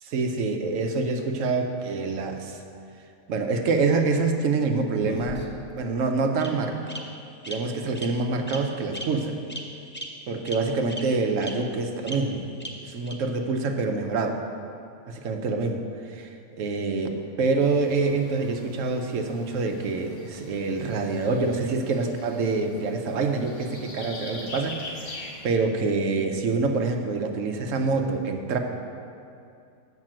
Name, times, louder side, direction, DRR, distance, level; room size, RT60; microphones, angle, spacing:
voice 1, 0.0-2.6 3.3-5.5 5.7-7.1 7.5-9.4 10.3-12.5 12.8-14.4 15.1-16.3 16.6-17.1 17.4-28.6, right 3 dB, 70° right, 4 dB, 1.1 m, -26 dB
Bird vocalization bird call bird song, 5.0-5.7 6.4-6.5 6.9-7.0 7.4-7.5 7.9-8.1 8.5-8.6 8.9-9.0 9.5-9.6 9.9-10.0 10.5-10.6 10.9-11.0 11.4-11.5 12.1-12.2 12.6-12.7 13.1-13.2, equal, 15° left, 0.4 m, -36 dB
sound 1, 17.6-25.5, left 2 dB, 60° left, 1.4 m, -43 dB
7.5 x 5.8 x 7.5 m, 2.5 s
omnidirectional pair, 1.5 m